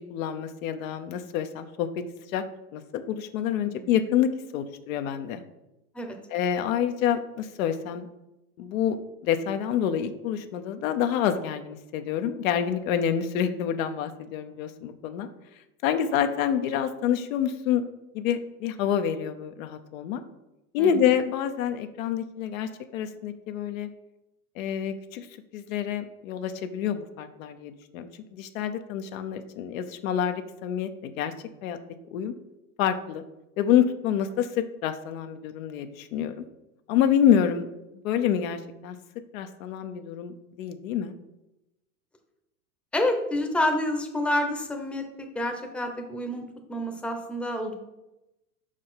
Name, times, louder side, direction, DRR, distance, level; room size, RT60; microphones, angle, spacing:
voice 1, 0.0-1.9 2.3-2.4 2.7-5.4 6.3-8.1 8.6-9.0 9.2-15.3 15.8-17.8 18.1-20.2 20.7-23.9 24.6-25.3 25.5-31.3 31.6-31.8 32.1-32.3 32.8-33.2 33.6-36.4 36.9-37.7 38.0-39.0 39.3-41.1, left 9 dB, 65° left, 8 dB, 0.8 m, -27 dB
voice 2, 20.8-21.1 42.9-46.4 46.7-47.8, left 1 dB, ahead, 3 dB, 0.9 m, -28 dB
5.4 x 5.0 x 5.7 m, 0.92 s
hypercardioid pair, 105°, 45 cm